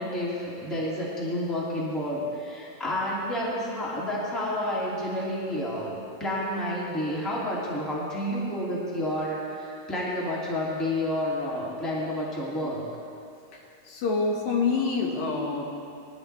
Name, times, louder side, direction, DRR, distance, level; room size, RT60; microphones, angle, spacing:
voice 1, 0.0-12.8, left 1 dB, ahead, -6 dB, 1.7 m, -30 dB
voice 2, 13.9-15.6, left 4 dB, 80° left, -1 dB, 3.2 m, -26 dB
20.5 x 11.0 x 3.4 m, 2.6 s
omnidirectional pair, 4.0 m